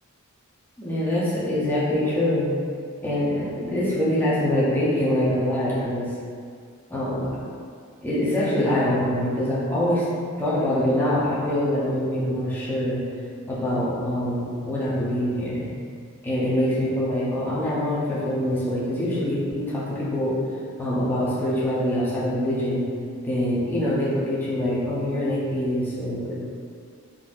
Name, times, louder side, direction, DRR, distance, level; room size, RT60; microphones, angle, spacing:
voice 1, 0.8-2.5 3.0-6.1 6.9-7.3 8.0-10.0 10.4-13.0 13.5-15.7 16.2-20.4 20.8-22.8 23.2-26.3, left 1 dB, 10° left, -9 dB, 0.5 m, -24 dB
3.7 x 2.6 x 2.3 m, 2.2 s
head